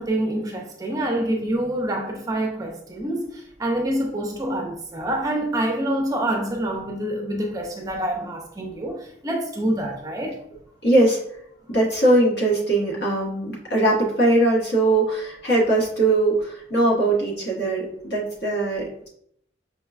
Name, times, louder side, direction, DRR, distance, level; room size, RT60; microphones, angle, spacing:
voice 1, 0.0-3.3 3.6-10.4, right 1 dB, 20° right, 0.4 m, -26 dB
voice 2, 10.8-11.2 11.7-19.1, right 2 dB, 60° left, 1.1 m, -21 dB
5.1 x 2.2 x 2.3 m
head